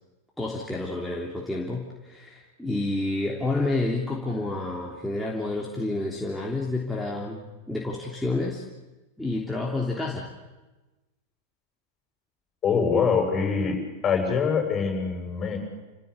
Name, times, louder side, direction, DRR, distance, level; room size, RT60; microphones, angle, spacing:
voice 1, 0.4-8.6 9.2-10.3, left 2 dB, 5° left, -3 dB, 3.3 m, -29 dB
voice 2, 12.6-13.7 14.0-15.6, left 5 dB, 30° left, 3 dB, 7.6 m, -24 dB
29.5 x 16.0 x 8.7 m, 1.1 s
hypercardioid pair, 95°, 0 cm